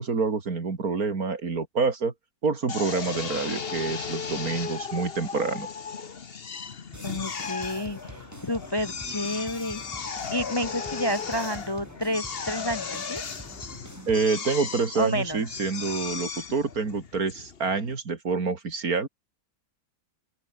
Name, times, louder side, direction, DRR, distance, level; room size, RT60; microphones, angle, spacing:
voice 1, 0.0-2.1 2.4-5.7 14.1-19.1, right 4 dB, 75° right, 3.2 m, -27 dB
Drill, 2.7-18.0, left 6 dB, 40° left, 1.4 m, -36 dB
sound 1, 6.9-14.3, right 1 dB, 10° right, 3.0 m, -45 dB
voice 2, 7.0-9.8 10.3-13.2 15.0-15.4, left 1 dB, 20° left, 0.8 m, -30 dB
open air
omnidirectional pair, 1.6 m